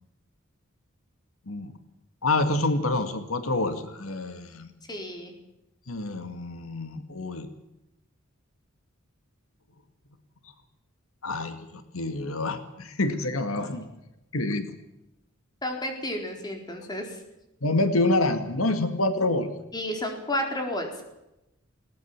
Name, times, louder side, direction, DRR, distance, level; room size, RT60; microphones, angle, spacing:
voice 1, 2.2-4.7 5.9-7.5 11.2-13.9 14.3-14.7 17.6-19.5, left 2 dB, 85° left, 9 dB, 2.0 m, -27 dB
voice 2, 4.9-5.3 15.6-17.2 19.7-21.0, left 1 dB, 20° left, 3 dB, 4.4 m, -31 dB
21.0 x 18.5 x 7.4 m, 0.91 s
head